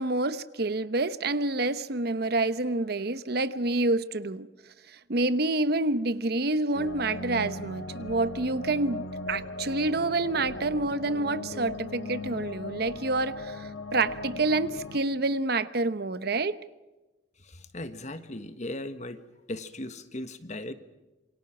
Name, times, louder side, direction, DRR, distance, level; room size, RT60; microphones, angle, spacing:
voice 1, 0.0-4.5 5.1-16.5, right 2 dB, 60° right, 0.9 m, -28 dB
sound 1, 6.7-15.0, left 2 dB, 85° left, 1.6 m, -38 dB
voice 2, 17.4-19.2 19.5-20.7, left 1 dB, 40° left, 1.5 m, -37 dB
27.5 x 24.0 x 6.0 m
head